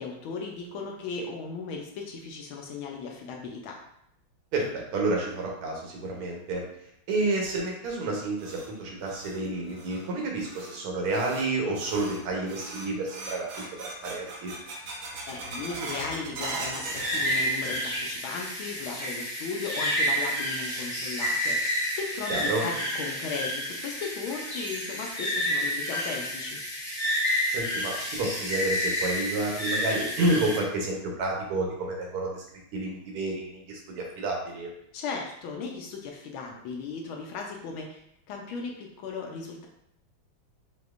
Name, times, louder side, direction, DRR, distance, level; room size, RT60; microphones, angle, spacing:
voice 1, 0.0-3.8 15.3-26.6 34.9-38.0 38.3-39.7, left 4 dB, 75° left, 1 dB, 1.4 m, -36 dB
voice 2, 4.5-6.6 7.1-14.5 22.3-22.6 27.5-32.4 32.7-34.7, right 2 dB, 90° right, -1 dB, 1.9 m, -30 dB
sound 1, 8.0-18.1 18.4-19.0 19.4-19.5 20.2-20.3 22.0-22.1 22.5-22.6 23.1-23.2 23.7-23.8 24.3-24.7, right 2 dB, 75° right, 1.6 m, -40 dB
sound 2, 16.9-30.6, equal, 25° left, 0.7 m, -30 dB
6.1 x 2.8 x 2.4 m, 0.74 s
omnidirectional pair, 2.4 m